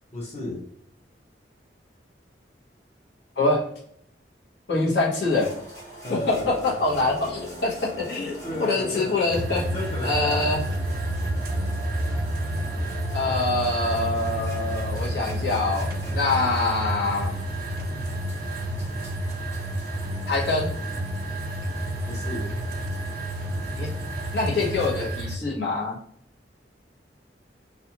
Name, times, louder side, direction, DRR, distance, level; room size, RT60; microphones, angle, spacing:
voice 1, 0.1-0.6 6.0-6.8 8.4-9.4 9.7-10.8 22.1-22.5, left 1 dB, 35° left, -2 dB, 0.8 m, -34 dB
voice 2, 4.7-5.5 6.1-9.6 10.0-10.6 13.1-17.3 20.3-20.7 23.8-23.9 24.3-26.0, left 3 dB, 75° left, -4 dB, 1.0 m, -25 dB
sound 1, 5.3-25.1, right 1 dB, 15° left, 1.1 m, -44 dB
sound 2, 6.3-18.2, right 1 dB, 5° right, 0.7 m, -36 dB
sound 3, 9.3-25.4, right 1 dB, 55° right, 0.4 m, -30 dB
2.5 x 2.4 x 2.8 m, 0.68 s
head